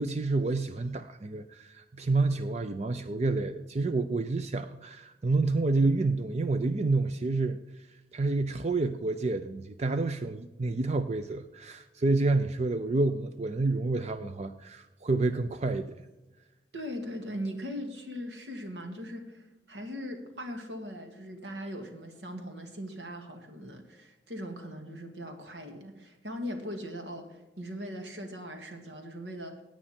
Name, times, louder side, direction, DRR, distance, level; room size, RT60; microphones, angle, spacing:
voice 1, 0.0-7.6 8.1-16.0, right 3 dB, 40° right, 10 dB, 0.5 m, -29 dB
voice 2, 16.7-29.6, equal, 75° right, 4 dB, 2.1 m, -40 dB
17.5 x 8.9 x 4.4 m, 1.1 s
head